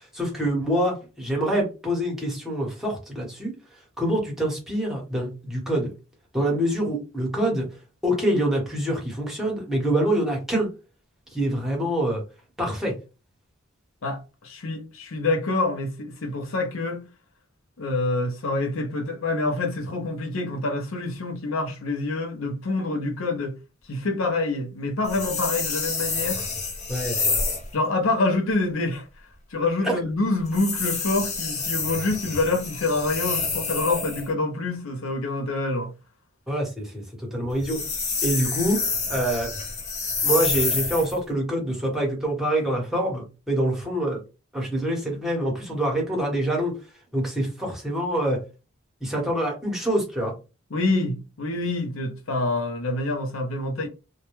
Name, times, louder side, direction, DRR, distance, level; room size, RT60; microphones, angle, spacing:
voice 1, 0.1-3.5 4.0-5.9 6.3-7.7 8.0-10.7 11.3-12.2 12.6-12.9 26.9-27.3 29.8-29.9 36.5-37.8 38.2-38.8 39.1-39.5 40.2-44.2 44.5-46.8 47.1-48.4 49.0-50.3, right 1 dB, ahead, 1.0 m, -25 dB
voice 2, 14.0-17.1 17.8-23.6 23.9-26.5 27.7-29.0 29.5-35.9 50.7-53.9, left 2 dB, 80° left, 0.6 m, -26 dB
sound 1, 25.0-27.7 30.5-34.3 37.5-41.2, left 4 dB, 35° left, 0.6 m, -28 dB
2.2 x 2.1 x 3.0 m
head